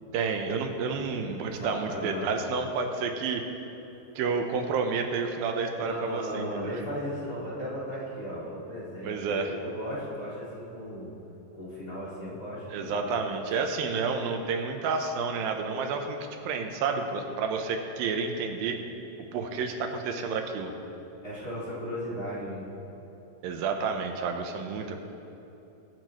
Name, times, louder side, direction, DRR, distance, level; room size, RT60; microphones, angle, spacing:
voice 1, 0.1-3.4 4.2-6.6 9.0-9.5 12.7-18.8 19.3-20.7 23.4-25.0, right 5 dB, 90° right, 4 dB, 2.7 m, -30 dB
voice 2, 0.9-2.3 3.9-4.0 5.8-11.1 11.5-13.1 13.5-13.6 14.5-14.6 21.2-22.7, equal, 30° left, -8 dB, 2.3 m, -36 dB
22.0 x 8.9 x 3.1 m, 2.9 s
omnidirectional pair, 4.1 m